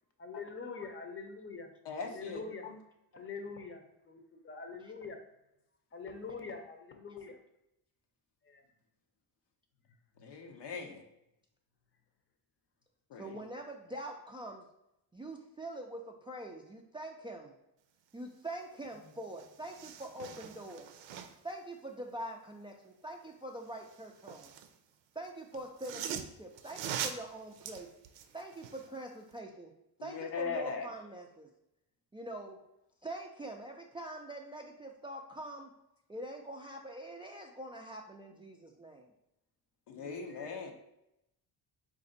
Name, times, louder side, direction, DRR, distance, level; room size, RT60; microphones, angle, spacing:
voice 1, 0.2-1.7 2.1-2.7 3.1-5.2 5.9-7.4 8.4-8.6 10.2-10.3 40.0-40.6, left 4 dB, 30° left, 5 dB, 0.7 m, -45 dB
voice 2, 1.8-2.8 10.2-11.0 13.1-13.4 30.0-30.9 39.9-40.7, left 5 dB, 70° left, 4 dB, 0.8 m, -40 dB
voice 3, 13.1-14.6 15.1-17.5 18.1-20.9 21.4-24.5 25.1-27.9 28.3-29.7 30.0-31.5 32.1-32.6 33.0-35.7 36.1-39.1, right 1 dB, 15° right, 1 dB, 0.3 m, -44 dB
sound 1, 18.9-19.0 19.3-21.5 23.7-24.7 25.5-28.9 29.3-29.4, right 9 dB, 90° right, 0.5 m, -42 dB
4.0 x 2.6 x 3.9 m, 0.84 s
cardioid pair, 95°, 43 cm